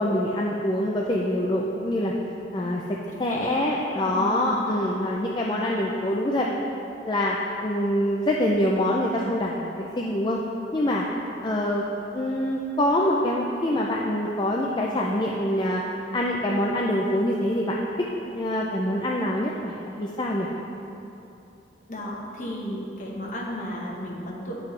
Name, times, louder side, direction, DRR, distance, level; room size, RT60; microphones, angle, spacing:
voice 1, 0.0-2.1 2.5-6.5 7.0-10.4 10.7-11.0 11.4-11.8 12.1-15.8 16.1-20.5, left 1 dB, 25° left, -2 dB, 0.4 m, -25 dB
voice 2, 3.3-3.8 4.0-4.5 21.9-24.6, equal, 40° left, -3 dB, 1.1 m, -34 dB
9.6 x 6.1 x 3.2 m, 2.9 s
head